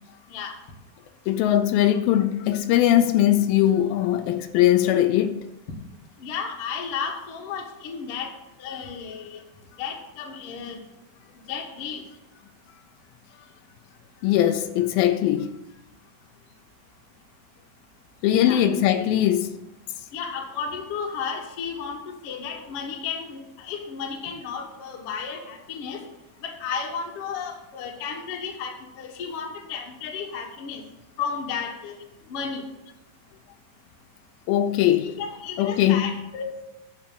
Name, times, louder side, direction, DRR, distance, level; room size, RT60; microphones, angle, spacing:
voice 1, 1.3-5.4 14.2-15.6 18.2-19.6 34.5-35.2 35.6-36.2, left 12 dB, 85° left, 2.5 m, -20 dB
voice 2, 6.2-8.3 8.6-9.4 9.8-10.8 11.5-12.0 18.4-18.6 20.1-26.0 26.4-30.8 31.2-31.9 32.3-32.6 35.2-36.6, left 6 dB, 55° left, 1.8 m, -33 dB
10.5 x 5.8 x 7.4 m
omnidirectional pair, 4.3 m